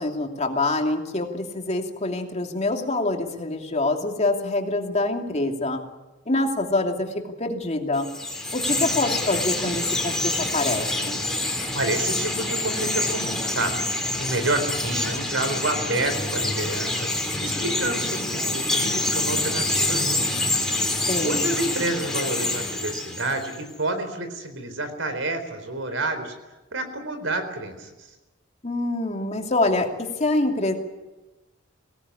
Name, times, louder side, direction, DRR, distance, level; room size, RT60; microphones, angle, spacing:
voice 1, 0.0-5.8 6.3-7.1 7.4-8.1 8.5-11.2 21.1-21.5 28.6-30.8, left 2 dB, 35° left, 3 dB, 2.7 m, -25 dB
Chirp tweet, 8.0-23.6, left 2 dB, 5° left, 3.4 m, -26 dB
voice 2, 11.7-13.8 14.2-17.1 17.4-20.3 20.8-26.3 26.7-28.1, right 2 dB, 90° right, 9 dB, 4.1 m, -29 dB
23.0 x 18.0 x 9.9 m, 1.1 s
head